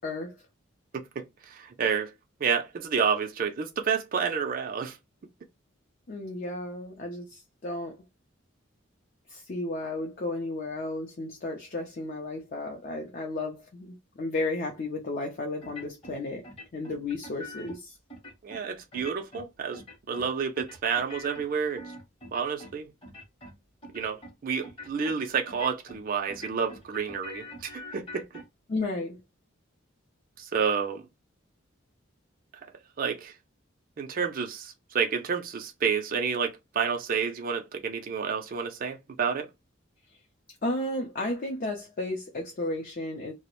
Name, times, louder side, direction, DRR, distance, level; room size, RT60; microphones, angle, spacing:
voice 1, 0.0-0.4 6.1-8.0 9.3-16.4 16.7-18.0 28.7-29.2 40.6-43.3, left 2 dB, 45° left, 0.5 m, -33 dB
voice 2, 0.9-2.1 2.4-5.0 18.4-19.8 20.1-21.8 22.3-22.9 23.9-28.3 30.4-31.0 33.0-33.3 34.0-39.5, right 6 dB, 45° right, 0.4 m, -30 dB
sound 1, 15.6-16.2 16.4-17.8 18.1-18.6 18.9-19.5 19.7-20.3 20.6-22.8 23.0-23.5 23.8-24.3 24.6-25.1 25.5-26.0 26.3-28.4, left 1 dB, 25° left, 0.8 m, -44 dB
2.3 x 2.0 x 2.9 m
head